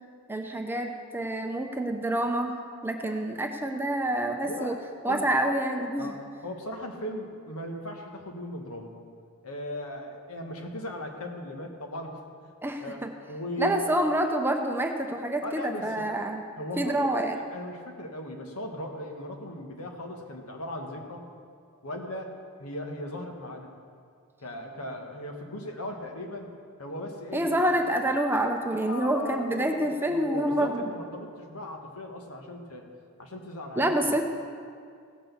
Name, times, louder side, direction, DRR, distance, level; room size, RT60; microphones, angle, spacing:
voice 1, 0.3-2.6 2.8-4.8 5.0-6.1 12.6-13.1 13.6-16.4 16.8-17.4 27.3-30.8 33.8-34.2, right 1 dB, 10° right, 4 dB, 0.7 m, -27 dB
voice 2, 4.4-4.8 5.1-5.2 6.0-6.2 6.4-8.9 9.4-12.5 12.8-13.0 13.3-13.9 15.4-15.9 16.6-21.2 21.8-23.7 24.4-26.5 26.8-27.5 28.8-32.9 33.2-34.2, left 1 dB, 80° left, 3 dB, 1.5 m, -38 dB
16.5 x 6.1 x 7.0 m, 2.2 s
head